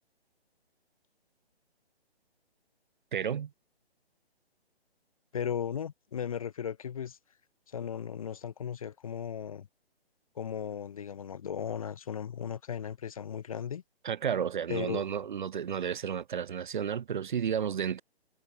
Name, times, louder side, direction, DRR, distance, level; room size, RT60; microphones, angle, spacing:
voice 1, 3.1-3.5 14.0-18.0, right 8 dB, 50° right, 0.7 m, -32 dB
voice 2, 5.3-7.2 7.7-9.7 10.4-13.8 14.7-15.0, left 8 dB, 35° left, 0.6 m, -36 dB
hypercardioid pair, 155°, 32 cm